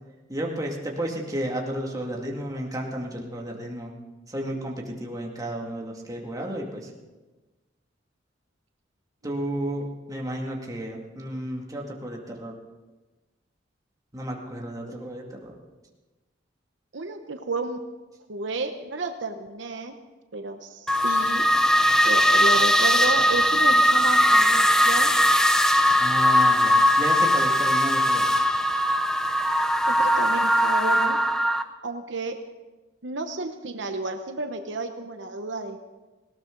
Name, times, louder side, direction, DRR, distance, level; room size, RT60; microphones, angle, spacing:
voice 1, 0.3-3.9 4.3-6.9 9.2-12.5 14.1-15.6 26.0-28.3, right 1 dB, 20° right, -1 dB, 2.2 m, -32 dB
voice 2, 16.9-17.8 18.3-19.9 20.3-21.4 22.0-25.1 29.9-31.2 31.8-32.4 33.0-35.8, right 3 dB, 70° right, 6 dB, 0.9 m, -31 dB
sound 1, 20.9-31.6, equal, 5° left, 0.6 m, -20 dB
19.0 x 17.5 x 3.9 m, 1.2 s
head